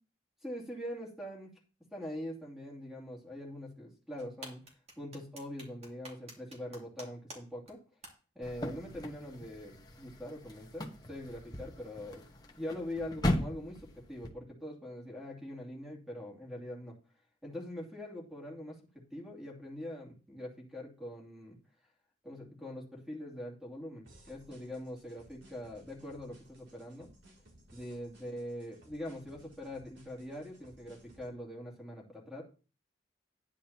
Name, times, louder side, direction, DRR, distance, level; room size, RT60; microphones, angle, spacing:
voice 1, 0.4-1.5 1.9-4.6 5.0-7.8 8.3-12.2 12.6-17.0 17.4-21.6 22.2-27.1 27.7-32.4, left 1 dB, 5° right, -2 dB, 2.6 m, -43 dB
sound 1, 4.2-7.4 7.7-7.8 8.0-8.1, right 1 dB, 35° right, 2.6 m, -47 dB
sound 2, 8.4-14.3, left 1 dB, 20° left, 1.2 m, -38 dB
sound 3, 24.0-31.3, right 1 dB, 65° right, 3.1 m, -60 dB
11.0 x 9.9 x 2.9 m, 0.36 s
head